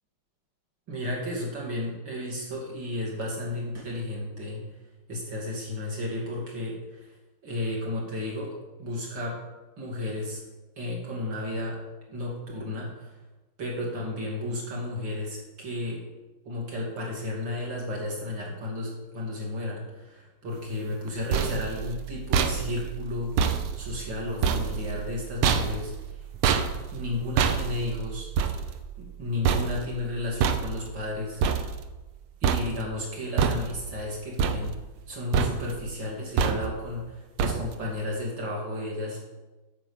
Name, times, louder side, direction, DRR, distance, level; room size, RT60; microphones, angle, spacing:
voice 1, 0.9-4.6 5.1-7.1 7.4-9.4 9.8-10.4 10.8-11.8 12.1-13.2 13.6-16.0 16.4-26.2 26.9-28.3 29.0-31.4 32.4-34.8 35.1-39.2, left 2 dB, 60° right, -3 dB, 3.2 m, -33 dB
sound 1, 20.9-32.2 32.4-33.0 33.4-34.0 34.4-35.1 35.3-35.9 36.4-36.9 37.4-37.9, right 7 dB, 85° right, 1.6 m, -28 dB
8.9 x 5.8 x 7.2 m, 1.1 s
omnidirectional pair, 2.3 m